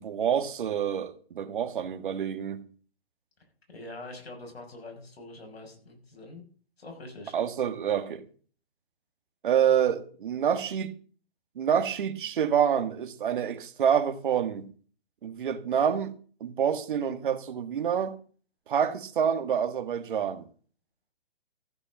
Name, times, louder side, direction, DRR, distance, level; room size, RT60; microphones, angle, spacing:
voice 1, 0.0-2.6 7.3-8.2 9.4-10.9 11.5-14.7 15.2-16.1 16.4-18.2 18.7-20.4, right 8 dB, 55° right, 1.7 m, -27 dB
voice 2, 3.7-6.4 6.8-7.3, left 2 dB, 75° left, 6.4 m, -44 dB
14.5 x 6.5 x 7.5 m
hypercardioid pair, 150°, 31 cm